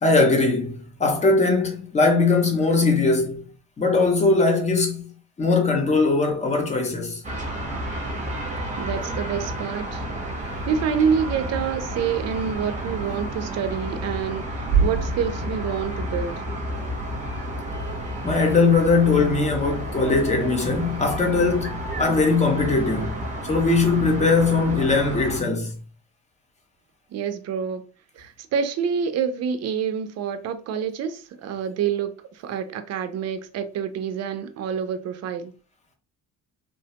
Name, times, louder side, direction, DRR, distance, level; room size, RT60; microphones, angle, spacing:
voice 1, 0.0-3.4 3.8-5.1 5.4-7.2 14.8-14.9 18.2-23.2 23.5-25.7, left 3 dB, 20° left, 0.6 m, -20 dB
sound 1, 7.2-25.4, right 2 dB, 25° right, 0.7 m, -30 dB
voice 2, 8.8-10.1 10.4-16.4 27.1-27.8 28.2-35.5, right 7 dB, 55° right, 0.4 m, -27 dB
3.2 x 2.1 x 2.8 m
cardioid pair, 180°, 32 cm